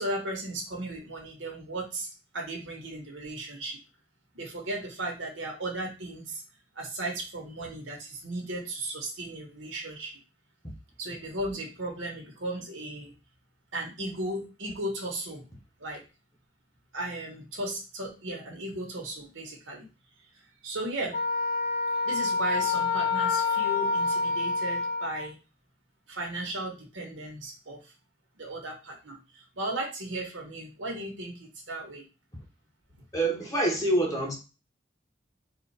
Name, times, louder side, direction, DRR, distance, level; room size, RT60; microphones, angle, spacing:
voice 1, 0.0-3.8 4.3-6.4 6.7-10.2 11.0-13.1 13.7-15.4 15.8-16.0 16.9-19.9 20.6-21.2 22.0-25.4 26.1-27.9 28.4-32.0, right 1 dB, 85° right, 1 dB, 1.4 m, -36 dB
Wind instrument woodwind instrument, 21.1-25.3, left 4 dB, 60° left, 1.7 m, -27 dB
voice 2, 33.1-34.3, right 1 dB, 20° left, -1 dB, 1.2 m, -26 dB
4.2 x 2.5 x 4.2 m, 0.30 s
head